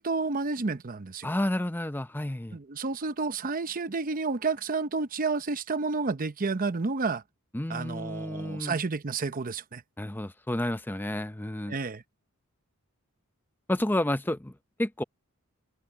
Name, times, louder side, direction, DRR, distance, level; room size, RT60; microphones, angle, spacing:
voice 1, 0.0-1.3 2.5-7.2 7.7-9.8 11.7-12.0, right 4 dB, 40° right, 0.8 m, -30 dB
voice 2, 1.2-2.6 7.5-8.8 10.0-11.8 13.7-14.5 14.8-15.0, left 1 dB, 10° left, 0.7 m, -30 dB
head